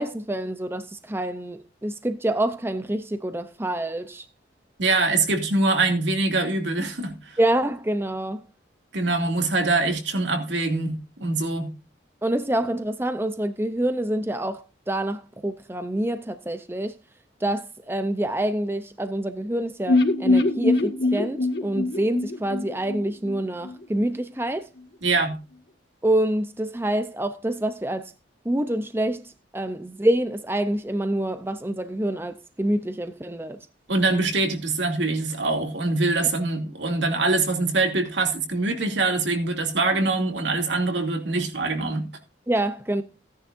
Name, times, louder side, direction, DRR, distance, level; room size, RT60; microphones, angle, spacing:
voice 1, 0.0-4.3 7.4-8.4 12.2-17.0 17.4-24.7 26.0-28.1 28.4-33.6 42.5-43.0, right 1 dB, 10° right, 0.6 m, -26 dB
voice 2, 4.8-7.4 8.9-11.7 25.0-25.4 33.9-42.1, right 3 dB, 75° right, 2.6 m, -24 dB
sound 1, 19.9-23.7 24.0-24.1 24.4-24.5, left 2 dB, 60° left, 2.0 m, -23 dB
17.0 x 10.5 x 2.6 m
head